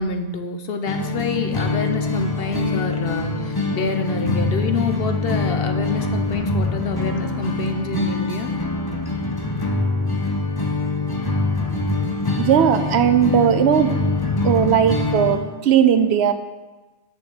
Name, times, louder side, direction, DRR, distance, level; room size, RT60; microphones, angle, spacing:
voice 1, 0.0-8.6, left 3 dB, 65° left, 6 dB, 1.0 m, -26 dB
sound 1, 0.9-15.4, left 3 dB, 25° left, 0.9 m, -24 dB
voice 2, 12.4-14.0 14.4-16.3, right 8 dB, 90° right, 10 dB, 0.9 m, -17 dB
6.5 x 6.4 x 7.1 m, 1.2 s
omnidirectional pair, 1.1 m